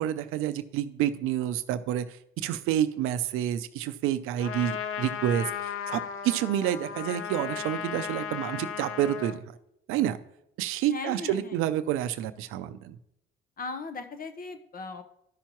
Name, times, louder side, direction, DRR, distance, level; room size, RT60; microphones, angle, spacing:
voice 1, 0.0-2.1 2.4-9.4 9.9-10.2 10.6-13.0, right 11 dB, 85° right, 12 dB, 0.5 m, -29 dB
Trumpet, 4.4-9.4, left 8 dB, 80° left, 0.7 m, -35 dB
voice 2, 10.9-11.6 13.6-15.0, left 3 dB, 45° left, 8 dB, 1.0 m, -38 dB
12.5 x 5.7 x 3.0 m, 0.78 s
supercardioid pair, 70°, 21 cm